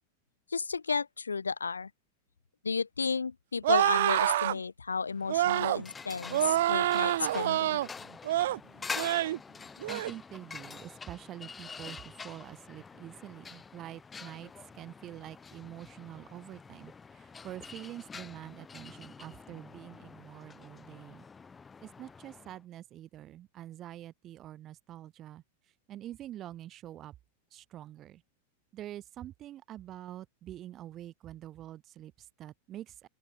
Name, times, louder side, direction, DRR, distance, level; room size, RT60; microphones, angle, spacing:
voice 1, 0.5-1.9 2.6-7.8, left 5 dB, 75° left, 1.4 m, -33 dB
sound 1, 3.6-4.6 5.3-5.8 6.3-7.9 8.2-8.6 9.0-9.4 9.8-10.1, right 14 dB, 55° right, 0.6 m, -27 dB
sound 2, 5.2-22.6, left 5 dB, 15° left, 5.9 m, -46 dB
voice 2, 9.9-21.2 21.8-27.1 27.5-28.2 28.7-33.1, right 12 dB, 30° right, 2.6 m, -46 dB
open air
figure-of-eight pair, 90°, 0 cm